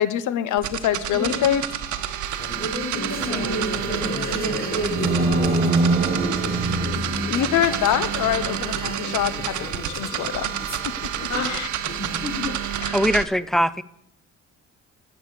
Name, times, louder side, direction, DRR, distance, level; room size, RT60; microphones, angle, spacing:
voice 1, 0.0-1.6 7.3-10.5 10.8-10.9 11.5-11.7 12.8-13.0, left 10 dB, 85° left, 14 dB, 0.9 m, -24 dB
sound 1, 0.6-13.2, right 11 dB, 75° right, 0.9 m, -29 dB
sound 2, 2.3-12.8, left 4 dB, 30° left, 1.0 m, -34 dB
voice 2, 2.5-6.9 11.3-11.5, equal, 50° left, -3 dB, 5.1 m, -31 dB
sound 3, 4.7-7.8, right 3 dB, 25° right, 0.9 m, -23 dB
voice 3, 12.9-13.8, equal, ahead, 17 dB, 0.4 m, -21 dB
10.5 x 7.0 x 6.4 m, 0.76 s
cardioid pair, 90°, 30 cm